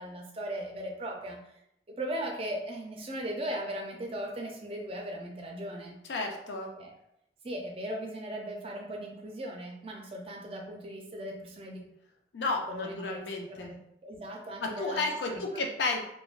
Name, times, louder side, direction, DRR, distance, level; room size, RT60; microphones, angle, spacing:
voice 1, 0.0-1.5 1.9-6.0 6.8-6.9 7.4-11.8 12.7-15.0 15.3-15.6, right 1 dB, 30° right, 1 dB, 0.4 m, -38 dB
voice 2, 6.1-6.7 12.3-13.7 14.6-16.0, left 3 dB, 80° left, 2 dB, 0.5 m, -32 dB
3.2 x 2.2 x 2.4 m, 0.79 s
head